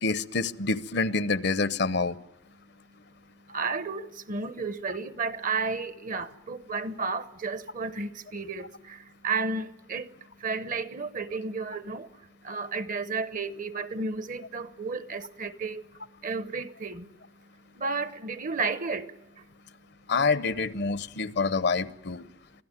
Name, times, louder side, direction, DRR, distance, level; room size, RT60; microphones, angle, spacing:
voice 1, 0.0-2.2 20.1-22.2, left 4 dB, 60° left, 0.8 m, -27 dB
voice 2, 3.4-15.9 16.2-17.1 17.4-19.5, right 4 dB, 45° right, 0.9 m, -33 dB
25.0 x 16.5 x 8.9 m
head